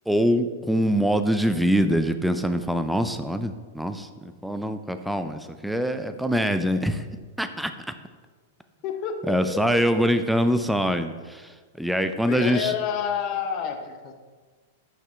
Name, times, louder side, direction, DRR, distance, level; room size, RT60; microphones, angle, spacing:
voice 1, 0.1-7.1 7.4-7.7 9.3-11.4 11.8-12.7, equal, ahead, 9 dB, 0.4 m, -24 dB
voice 2, 8.8-10.1 12.2-14.2, left 7 dB, 40° left, 6 dB, 0.7 m, -29 dB
5.9 x 5.5 x 3.2 m, 1.5 s
hypercardioid pair, 105°, 0 cm